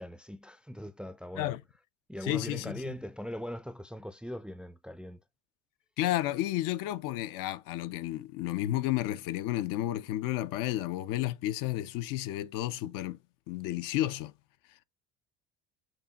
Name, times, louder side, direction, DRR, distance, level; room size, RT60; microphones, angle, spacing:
voice 1, 0.0-1.5 2.1-5.2, equal, 5° right, 0.4 m, -40 dB
voice 2, 2.2-3.0 6.0-13.2 13.5-14.3, left 14 dB, 70° left, 0.6 m, -32 dB
6.0 x 2.2 x 4.0 m
supercardioid pair, 90°, 33 cm